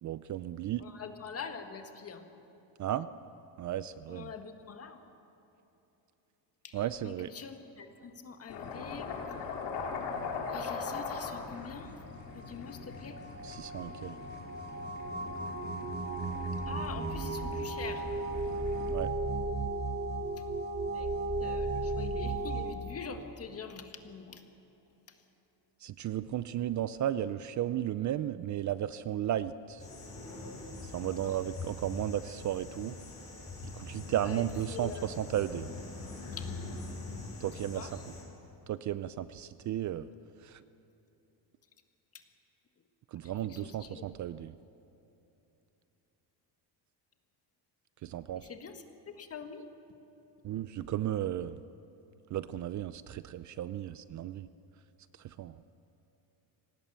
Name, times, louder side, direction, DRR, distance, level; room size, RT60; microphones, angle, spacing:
voice 1, 0.0-0.9 2.8-3.1 3.6-4.3 6.7-7.3 13.4-14.2 18.9-19.1 25.8-29.8 30.8-33.0 33.6-35.7 37.4-37.9 38.7-40.1 40.4-40.6 43.1-44.5 48.0-48.5 50.4-51.6 52.3-54.5 55.2-55.6, right 11 dB, 45° right, 14 dB, 0.5 m, -34 dB
voice 2, 0.8-2.3 4.1-5.1 6.6-9.1 10.5-11.9 12.3-13.2 16.6-18.1 20.9-21.1 21.4-24.4 25.1-25.2 31.0-31.2 34.2-35.1 36.3-36.5 37.4-38.0 42.1-42.2 43.2-44.1 48.3-49.6, left 6 dB, 35° left, 6 dB, 1.8 m, -45 dB
sound 1, 8.5-18.9, left 5 dB, 80° left, 3.3 m, -41 dB
sound 2, 11.5-22.7, right 2 dB, 25° right, 1.7 m, -35 dB
sound 3, 29.8-38.2, left 3 dB, 15° left, 7.0 m, -43 dB
25.5 x 18.5 x 7.0 m, 3.0 s
cardioid pair, 140°, 43 cm